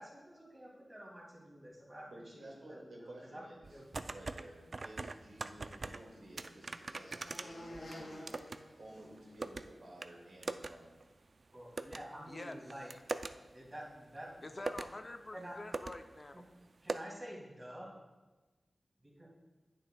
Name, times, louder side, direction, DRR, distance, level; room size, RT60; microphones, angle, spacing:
voice 1, 0.0-4.1 11.5-12.9 13.5-14.5 15.3-15.6 16.3-16.4 16.8-17.9 19.0-19.3, equal, 20° right, -4 dB, 2.5 m, -49 dB
voice 2, 2.1-3.7 4.1-8.4 8.8-11.0, right 1 dB, 85° right, -2 dB, 2.0 m, -53 dB
sound 1, 3.6-4.4 4.7-6.0 6.4-8.6 8.9-9.7 10.0-10.1 10.4-10.7 11.0-11.1 11.8-12.0 12.5-13.3 14.2-14.3 14.6-14.9 15.4-15.5 15.7-16.3 16.9-17.0, right 3 dB, 55° right, 0.3 m, -40 dB
sound 2, 5.3-9.6, equal, 85° left, 1.9 m, -52 dB
voice 3, 12.3-12.6 14.4-16.4, left 2 dB, 35° left, 6 dB, 0.4 m, -46 dB
10.0 x 8.8 x 2.3 m, 1.2 s
wide cardioid pair, 90°, 0 cm